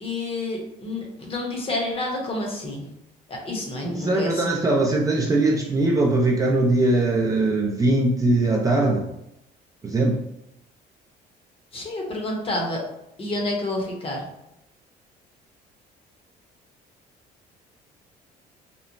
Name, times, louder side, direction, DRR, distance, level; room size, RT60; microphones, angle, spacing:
voice 1, 0.0-2.9 3.3-4.6 11.7-12.8 13.2-14.2, left 2 dB, 35° left, 0 dB, 0.8 m, -29 dB
voice 2, 3.8-9.1 9.8-10.3, right 2 dB, 20° right, -2 dB, 0.4 m, -21 dB
3.0 x 2.0 x 2.5 m, 0.83 s
cardioid pair, 110°, 17 cm